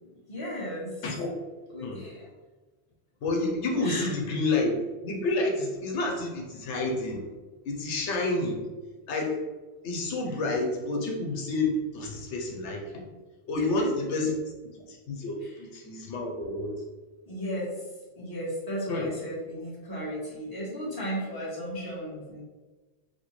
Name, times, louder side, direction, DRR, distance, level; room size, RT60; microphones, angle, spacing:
voice 1, 0.3-1.0 1.7-2.2 3.8-4.1 13.6-13.9 17.2-17.9 18.1-22.4, equal, 20° left, -6 dB, 1.0 m, -35 dB
voice 2, 1.8-2.3 3.2-7.3 7.6-8.7 9.1-9.4 9.8-13.1 13.5-14.4 14.7-16.8 18.9-19.1, left 2 dB, 85° left, 0 dB, 1.0 m, -29 dB
4.3 x 2.2 x 3.0 m, 1.3 s
omnidirectional pair, 1.2 m